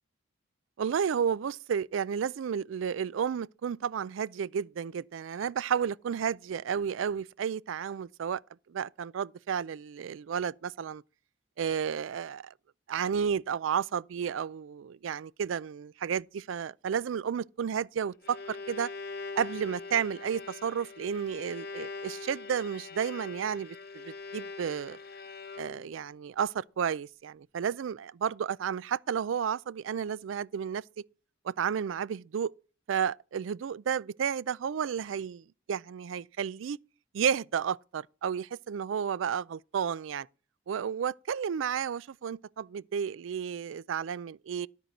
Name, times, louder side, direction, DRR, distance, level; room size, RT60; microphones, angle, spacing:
voice 1, 0.8-8.4 8.7-11.0 11.6-12.5 12.9-18.9 19.4-25.0 25.6-30.8 31.4-32.5 32.9-36.8 37.1-40.3 40.7-44.7, right 7 dB, 70° right, 0.4 m, -32 dB
Bowed string instrument, 18.0-26.0, left 4 dB, 50° left, 0.9 m, -42 dB
12.5 x 4.5 x 6.5 m
head